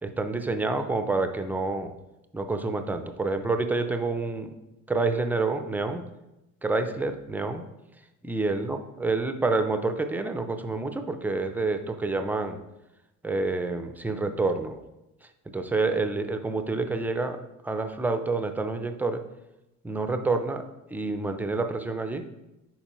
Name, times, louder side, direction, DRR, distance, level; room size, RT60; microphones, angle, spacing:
voice 1, 0.0-1.9 2.3-4.5 4.9-6.1 6.6-7.6 8.2-12.6 13.2-14.8 15.5-19.2 19.8-20.7 20.9-22.3, right 3 dB, 5° right, 7 dB, 0.3 m, -28 dB
10.0 x 4.4 x 2.9 m, 0.97 s
cardioid pair, 135°, 34 cm